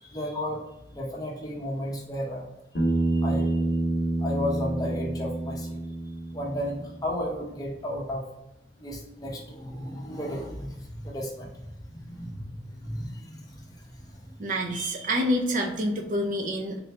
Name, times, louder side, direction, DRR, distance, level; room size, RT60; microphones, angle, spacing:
voice 1, 0.0-0.6 0.9-2.4 3.1-3.6 4.2-5.8 6.3-8.2 8.8-14.2, left 1 dB, 20° left, -2 dB, 0.8 m, -34 dB
Bass guitar, 2.7-7.1, right 2 dB, 60° left, 0.9 m, -28 dB
voice 2, 14.4-16.8, equal, 45° right, 1 dB, 0.5 m, -27 dB
3.8 x 2.3 x 4.2 m, 0.94 s
head